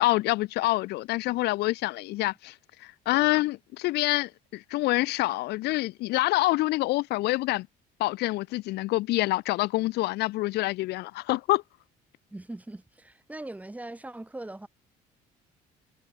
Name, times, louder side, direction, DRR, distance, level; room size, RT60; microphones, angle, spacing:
voice 1, 0.0-2.5 2.8-7.7 8.0-11.6, left 19 dB, 75° left, 0.5 m, -26 dB
voice 2, 12.3-14.7, right 2 dB, 10° right, 2.1 m, -40 dB
cardioid pair, 110°, 17 cm